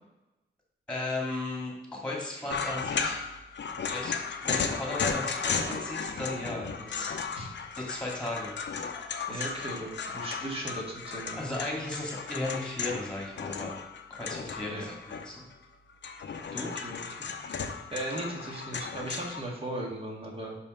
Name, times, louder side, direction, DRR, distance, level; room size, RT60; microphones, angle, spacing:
voice 1, 0.9-3.2 3.7-7.2 7.8-8.5 9.3-9.7 11.3-13.8 14.2-15.4 16.5-16.7, left 2 dB, 5° left, -3 dB, 2.4 m, -36 dB
sound 1, 2.5-15.5 15.9-19.4, left 5 dB, 60° left, 0.7 m, -35 dB
voice 2, 9.3-11.7 14.7-14.9 16.5-17.3 17.9-20.6, right 1 dB, 30° right, -2 dB, 1.8 m, -37 dB
5.7 x 5.6 x 5.1 m, 0.97 s
wide cardioid pair, 135°, 21 cm